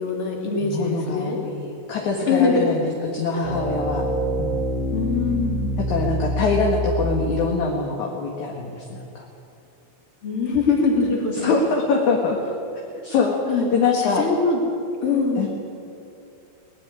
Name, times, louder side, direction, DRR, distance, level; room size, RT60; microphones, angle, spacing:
voice 1, 0.0-1.4 2.2-2.7 4.9-5.8 10.2-11.5 13.5-13.7 13.9-14.6 15.0-15.5, left 4 dB, 35° left, 0 dB, 3.7 m, -22 dB
voice 2, 0.6-2.8 3.1-4.0 4.4-4.5 5.9-9.3 11.3-12.5 13.0-14.3 15.4-15.5, left 4 dB, 55° left, 0 dB, 2.9 m, -24 dB
sound 1, 3.4-7.4, right 1 dB, 65° right, 4.2 m, -26 dB
19.5 x 15.5 x 9.9 m, 2.6 s
omnidirectional pair, 4.5 m